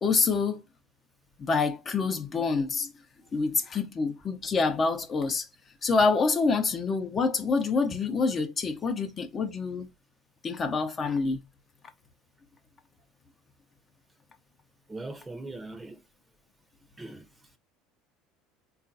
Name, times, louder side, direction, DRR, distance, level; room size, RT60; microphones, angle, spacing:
voice 1, 0.0-0.6 1.4-2.9 3.3-5.5 5.8-9.9 10.4-11.4, left 4 dB, 35° left, 0.6 m, -26 dB
voice 2, 14.9-16.0 17.0-17.2, right 2 dB, 15° right, 0.7 m, -40 dB
3.7 x 2.4 x 2.7 m
hypercardioid pair, 70°, 0 cm